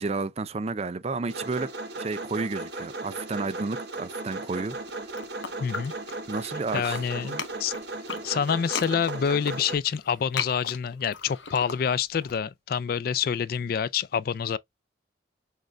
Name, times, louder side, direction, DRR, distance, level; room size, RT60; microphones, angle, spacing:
voice 1, 0.0-1.7 2.0-4.8 6.3-7.4, right 3 dB, 35° right, 0.4 m, -32 dB
sound 1, 1.3-9.8, right 2 dB, 60° right, 1.0 m, -36 dB
sound 2, 4.8-6.4 6.7-12.3, left 6 dB, 75° left, 0.9 m, -37 dB
voice 2, 5.6-5.9 6.7-7.7 8.2-14.6, left 7 dB, 50° left, 0.3 m, -27 dB
6.4 x 2.5 x 3.2 m
head